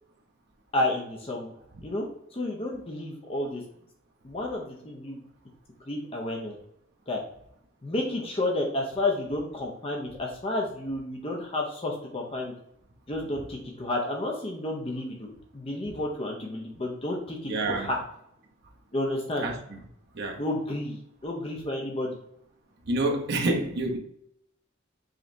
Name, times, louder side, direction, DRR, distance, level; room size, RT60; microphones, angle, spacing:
voice 1, 0.7-1.5 1.8-2.0 2.3-3.6 4.2-5.2 5.9-6.6 7.1-7.2 7.8-12.5 13.1-18.0 18.9-19.5 20.4-22.2, left 1 dB, 30° left, 0.6 m, -31 dB
voice 2, 17.5-17.9 19.4-19.8 20.1-20.4 22.9-24.0, right 2 dB, 55° right, 0.7 m, -28 dB
5.0 x 3.1 x 2.6 m
head